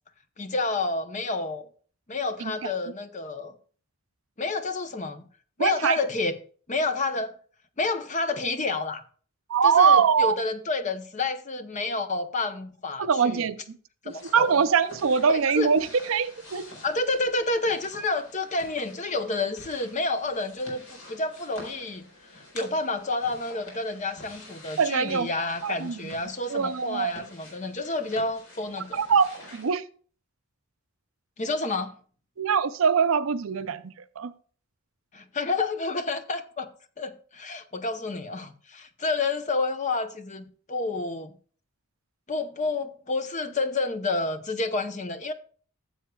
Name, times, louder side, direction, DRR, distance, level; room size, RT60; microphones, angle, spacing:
voice 1, 0.4-1.7 2.1-3.5 4.4-5.2 5.6-6.3 6.7-7.3 7.8-9.0 9.6-13.4 14.0-14.6 15.3-15.7 16.8-22.0 22.5-29.0 31.4-31.9 35.1-36.7 37.0-41.3 42.3-45.3, left 3 dB, 35° left, 0.8 m, -29 dB
voice 2, 5.6-6.0 9.5-10.3 13.0-13.6 14.3-16.6 24.8-25.3 25.6-26.0 26.5-27.1 28.9-29.8 32.4-34.3, right 6 dB, 70° right, 0.5 m, -23 dB
sound 1, 14.1-29.7, left 1 dB, 80° left, 4.4 m, -48 dB
14.5 x 7.8 x 2.3 m
head